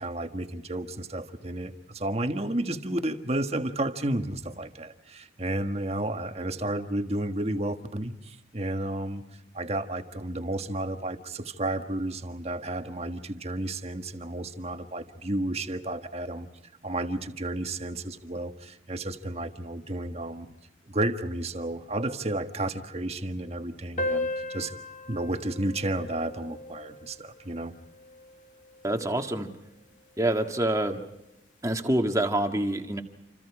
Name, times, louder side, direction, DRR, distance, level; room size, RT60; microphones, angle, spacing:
voice 1, 0.0-9.2 9.5-16.5 16.8-20.5 20.9-24.8 25.1-27.7, right 1 dB, 35° right, 7 dB, 1.5 m, -32 dB
sound 1, 24.0-29.0, left 2 dB, 40° left, 2.7 m, -36 dB
voice 2, 28.8-29.5 30.2-31.0 31.6-33.0, right 1 dB, 15° right, 4 dB, 1.8 m, -26 dB
28.0 x 26.5 x 4.9 m, 0.89 s
head